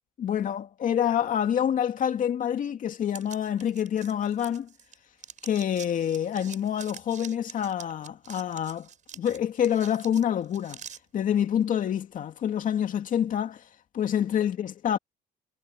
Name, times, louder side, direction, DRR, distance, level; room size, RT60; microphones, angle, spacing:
voice 1, 0.2-4.7 5.4-8.9 9.2-10.8 11.1-13.6 13.9-15.0, left 9 dB, 50° left, 2.4 m, -27 dB
sound 1, 3.1-4.9 5.2-11.0, right 8 dB, 45° right, 6.2 m, -45 dB
cardioid pair, 110°, 17 cm